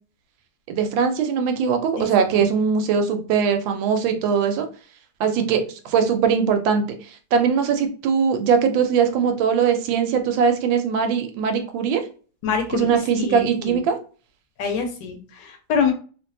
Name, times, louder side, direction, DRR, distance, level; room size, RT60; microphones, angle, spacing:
voice 1, 0.7-4.7 5.2-6.8 7.3-12.0 12.7-13.9, right 6 dB, 80° right, 6 dB, 1.3 m, -21 dB
voice 2, 2.0-2.5 12.4-13.8 14.6-15.9, left 6 dB, 75° left, 4 dB, 1.2 m, -26 dB
3.0 x 2.6 x 2.6 m, 0.39 s
omnidirectional pair, 2.1 m